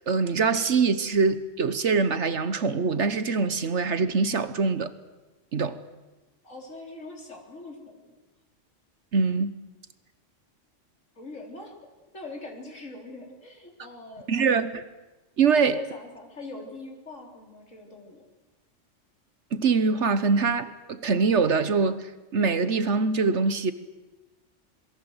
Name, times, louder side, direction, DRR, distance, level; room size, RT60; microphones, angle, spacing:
voice 1, 0.0-4.9 5.5-5.8 9.1-9.5 14.3-14.8 15.4-15.8 19.5-23.7, right 4 dB, 70° right, 1.4 m, -24 dB
voice 2, 6.4-8.2 11.2-11.7 12.1-14.7 15.5-18.2, left 2 dB, 85° left, 4.0 m, -42 dB
27.0 x 22.5 x 8.0 m
omnidirectional pair, 1.3 m